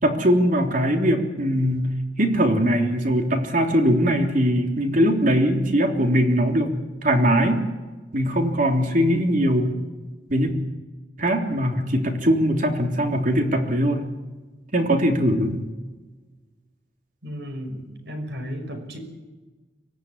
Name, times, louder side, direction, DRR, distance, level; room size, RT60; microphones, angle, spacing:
voice 1, 0.0-6.7 7.0-7.6 8.1-9.7 10.3-10.5 11.2-14.1 14.7-15.6, equal, 45° right, 3 dB, 3.4 m, -21 dB
voice 2, 17.2-19.0, equal, 65° right, 6 dB, 5.7 m, -34 dB
25.0 x 17.5 x 9.8 m, 1.2 s
head